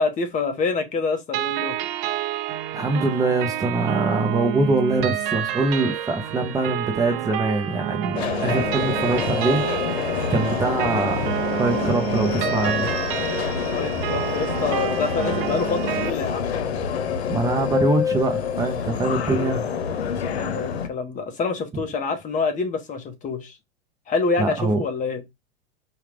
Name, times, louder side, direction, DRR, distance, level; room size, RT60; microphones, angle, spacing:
voice 1, 0.0-1.7 13.7-16.5 20.3-23.5 24.1-25.2, left 4 dB, 25° left, 1.0 m, -26 dB
sound 1, 1.3-16.1, right 12 dB, 50° right, 0.7 m, -29 dB
voice 2, 2.7-9.6 10.3-12.9 17.3-19.7 24.4-24.8, right 2 dB, 10° right, 0.6 m, -23 dB
Subway metro underground, 8.1-20.9, left 7 dB, 85° left, 0.9 m, -27 dB
4.8 x 2.4 x 3.3 m
hypercardioid pair, 125°, 31 cm